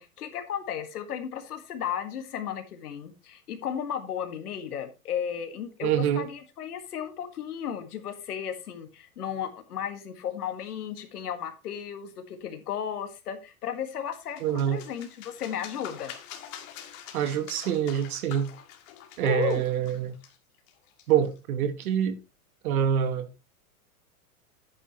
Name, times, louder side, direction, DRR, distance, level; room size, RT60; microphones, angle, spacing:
voice 1, 0.0-16.1 19.2-19.6, left 9 dB, 80° left, 2.0 m, -34 dB
voice 2, 5.8-6.3 14.4-14.8 17.1-18.5 19.2-20.1 21.1-22.2 22.6-23.3, right 9 dB, 70° right, 1.4 m, -25 dB
sound 1, 13.9-21.4, left 10 dB, 55° left, 2.2 m, -46 dB
11.0 x 8.8 x 3.1 m
hypercardioid pair, 115°, 45 cm